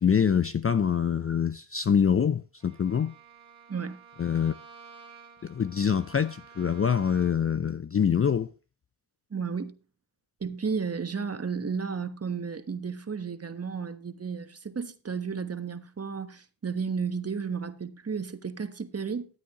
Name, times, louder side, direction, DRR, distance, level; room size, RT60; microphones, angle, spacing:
voice 1, 0.0-3.1 4.2-4.5 5.4-8.5, left 7 dB, 30° left, 0.5 m, -25 dB
Bowed string instrument, 2.6-7.6, right 6 dB, 70° right, 3.0 m, -52 dB
voice 2, 9.3-9.7 10.4-19.3, right 5 dB, 30° right, 1.3 m, -33 dB
13.5 x 8.5 x 3.0 m
cardioid pair, 60°, 49 cm